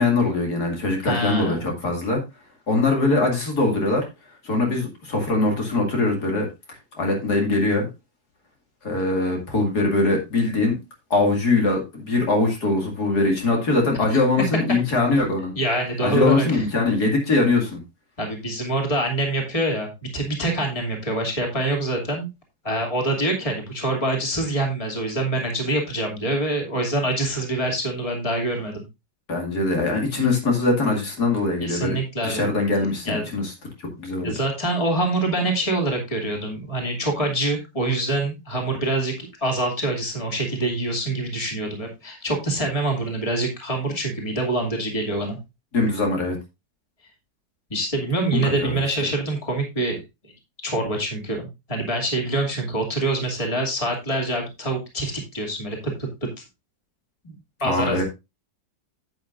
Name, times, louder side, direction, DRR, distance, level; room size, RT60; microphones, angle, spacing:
voice 1, 0.0-2.2 2.7-4.0 4.4-6.5 7.0-7.9 8.8-10.7 11.1-15.5 16.0-17.8 29.3-32.0 32.2-33.5 33.8-34.3 45.7-46.4 48.3-48.8 57.6-58.0, left 2 dB, 65° left, 1 dB, 2.9 m, -22 dB
voice 2, 1.0-1.7 14.1-14.2 15.6-16.6 18.2-22.3 22.6-28.8 31.6-32.5 33.0-33.2 34.2-45.4 47.7-50.0 50.6-56.1 57.2-57.4 57.6-58.0, right 2 dB, 20° left, 1 dB, 2.6 m, -25 dB
11.0 x 8.7 x 2.6 m, 0.24 s
omnidirectional pair, 1.8 m